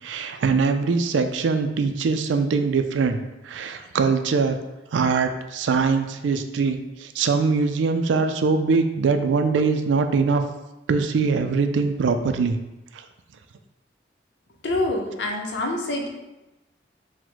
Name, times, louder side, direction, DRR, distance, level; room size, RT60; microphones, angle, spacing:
voice 1, 0.0-4.6 4.9-10.4 10.9-12.6, right 4 dB, 90° right, 8 dB, 0.4 m, -22 dB
voice 2, 14.6-16.1, left 1 dB, 80° left, 2 dB, 0.7 m, -26 dB
4.8 x 2.1 x 3.8 m, 1.0 s
head